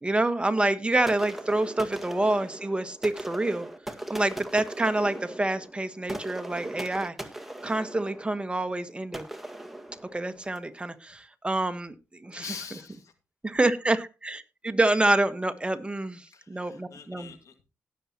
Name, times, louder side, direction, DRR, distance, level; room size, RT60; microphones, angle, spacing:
voice 1, 0.0-3.7 4.1-7.1 7.6-9.3 10.1-12.4 13.4-17.3, right 2 dB, 20° right, 9 dB, 1.4 m, -27 dB
sound 1, 1.1-10.7, right 1 dB, 5° right, 1.8 m, -40 dB
voice 2, 12.3-13.1 16.3-17.6, left 6 dB, 80° left, 8 dB, 2.0 m, -43 dB
18.0 x 7.3 x 3.0 m, 0.29 s
cardioid pair, 65°, 5 cm